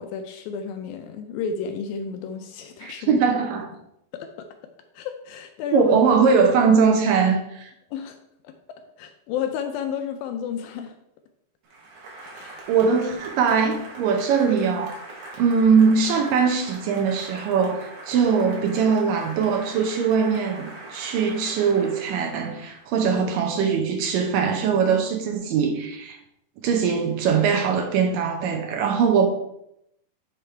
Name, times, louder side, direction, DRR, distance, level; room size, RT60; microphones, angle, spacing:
voice 1, 0.0-3.2 4.1-4.5 4.9-6.0 7.9-8.2 8.4-11.0 12.3-12.6, left 7 dB, 80° left, 2.1 m, -32 dB
voice 2, 2.8-3.7 5.7-7.7 12.7-15.0 15.4-26.2 26.6-29.3, right 6 dB, 75° right, 2.1 m, -21 dB
Applause, 11.6-23.2, right 2 dB, 55° right, 2.4 m, -42 dB
6.7 x 5.2 x 4.4 m
omnidirectional pair, 4.7 m